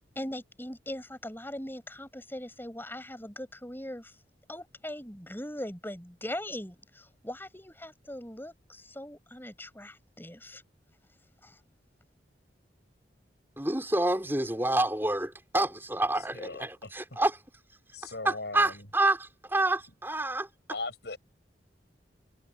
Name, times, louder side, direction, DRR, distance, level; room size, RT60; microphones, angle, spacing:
voice 1, 0.1-4.1 4.5-10.6 11.4-11.6, left 1 dB, 10° left, 6.8 m, -40 dB
voice 2, 13.6-17.4 18.2-20.5, right 2 dB, 10° right, 5.0 m, -28 dB
voice 3, 16.3-16.7 17.9-18.8 20.7-21.2, left 3 dB, 65° left, 6.7 m, -38 dB
head